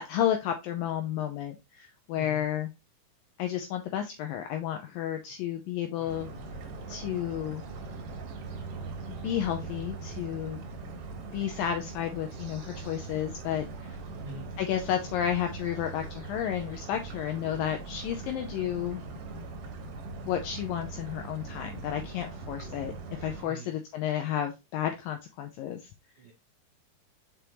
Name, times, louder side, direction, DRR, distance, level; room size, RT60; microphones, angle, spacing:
voice 1, 0.0-2.7 3.4-6.3 6.9-7.7 9.2-10.6 11.3-14.0 14.6-19.0 20.2-22.9 23.2-25.9, left 10 dB, 80° left, 5 dB, 2.2 m, -32 dB
voice 2, 2.1-2.5 6.0-6.1 14.2-14.5 23.4-23.7 26.2-26.3, equal, 85° right, 1 dB, 1.3 m, -44 dB
sound 1, 6.1-23.4, right 3 dB, 65° right, 2.5 m, -41 dB
6.1 x 5.2 x 2.9 m, 0.24 s
omnidirectional pair, 4.5 m